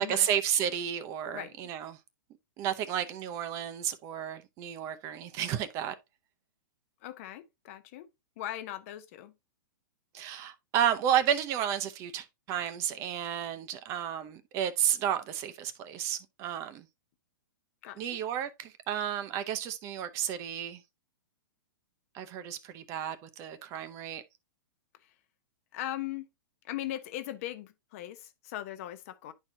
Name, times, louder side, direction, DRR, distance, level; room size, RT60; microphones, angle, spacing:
voice 1, 0.0-2.0 2.6-5.9 10.1-16.9 18.0-20.8 22.1-24.2, right 9 dB, 25° right, 0.7 m, -32 dB
voice 2, 1.3-1.7 7.0-8.1 8.4-9.3 17.8-18.2 25.7-26.3 26.6-29.3, left 13 dB, 40° left, 0.8 m, -39 dB
10.5 x 4.5 x 2.7 m
hypercardioid pair, 160°, 12 cm